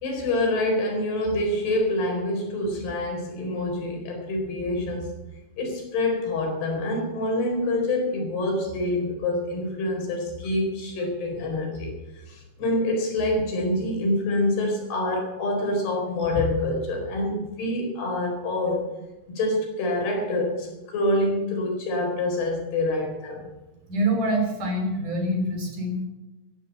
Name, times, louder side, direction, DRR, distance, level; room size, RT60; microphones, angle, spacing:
voice 1, 0.0-5.1 5.6-18.9 19.3-23.5, left 1 dB, 75° left, 1 dB, 6.3 m, -26 dB
voice 2, 23.9-26.0, right 1 dB, 50° right, 3 dB, 4.9 m, -25 dB
15.5 x 11.0 x 8.0 m, 1.1 s
omnidirectional pair, 4.6 m